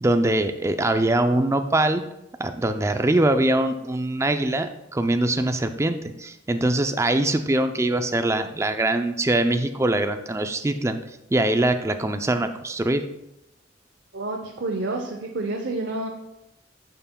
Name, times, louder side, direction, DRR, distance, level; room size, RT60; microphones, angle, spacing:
voice 1, 0.0-2.0 2.4-11.0 11.3-13.0, right 1 dB, 15° right, 8 dB, 0.4 m, -23 dB
voice 2, 14.1-16.1, right 2 dB, 60° right, 2 dB, 0.7 m, -29 dB
11.0 x 5.7 x 2.2 m, 0.86 s
head